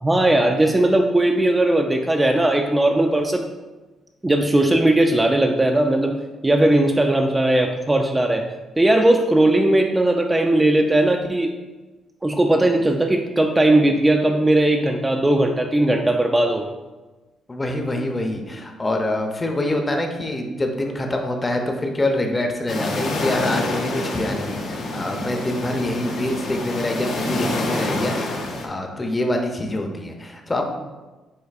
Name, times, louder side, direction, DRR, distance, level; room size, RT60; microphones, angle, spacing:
voice 1, 0.0-3.5 4.2-6.2 6.4-8.4 8.8-11.5 12.2-16.7, right 1 dB, 15° right, 3 dB, 0.3 m, -18 dB
voice 2, 17.5-30.7, left 1 dB, 20° left, 3 dB, 0.6 m, -25 dB
sound 1, 22.7-28.7, left 2 dB, 75° left, 0.7 m, -27 dB
7.3 x 2.6 x 2.5 m, 1.2 s
cardioid pair, 90°, 0 cm